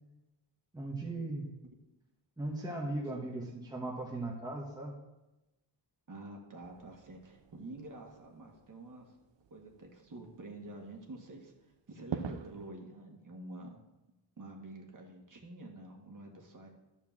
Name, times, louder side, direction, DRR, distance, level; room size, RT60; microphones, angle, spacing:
voice 1, 0.7-1.5 2.4-4.9, right 2 dB, 10° right, -1 dB, 1.2 m, -38 dB
voice 2, 6.1-9.1 9.5-13.8 14.4-16.7, right 2 dB, 45° right, 1 dB, 1.7 m, -48 dB
sound 1, 6.6-12.7, right 7 dB, 75° right, 0.8 m, -46 dB
12.5 x 4.5 x 7.4 m, 1.0 s
wide cardioid pair, 170°, 44 cm